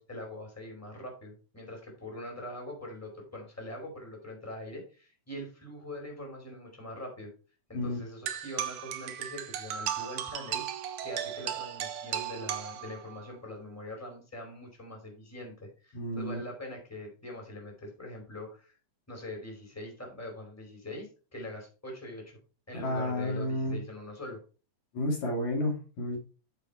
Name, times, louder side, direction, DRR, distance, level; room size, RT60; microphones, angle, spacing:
voice 1, 0.0-7.3 7.7-18.7 19.1-22.4 22.7-24.4, left 1 dB, 5° left, 0 dB, 4.6 m, -43 dB
sound 1, 8.3-13.3, right 10 dB, 85° right, 2.7 m, -36 dB
voice 2, 15.9-16.4 22.8-23.8 24.9-26.2, left 1 dB, 65° left, 0 dB, 3.9 m, -31 dB
9.3 x 7.6 x 4.3 m, 0.35 s
omnidirectional pair, 3.5 m